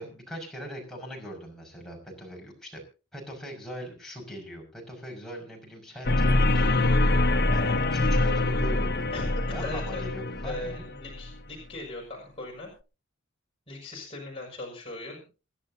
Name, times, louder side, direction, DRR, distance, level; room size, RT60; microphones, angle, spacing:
voice 1, 0.0-2.8 3.1-10.8, equal, ahead, -2 dB, 5.9 m, -41 dB
sound 1, 6.0-11.3, left 2 dB, 50° left, 1.2 m, -24 dB
voice 2, 9.1-10.0 10.4-12.7 13.7-15.2, left 2 dB, 25° left, -2 dB, 6.4 m, -39 dB
28.0 x 11.0 x 2.8 m, 0.33 s
head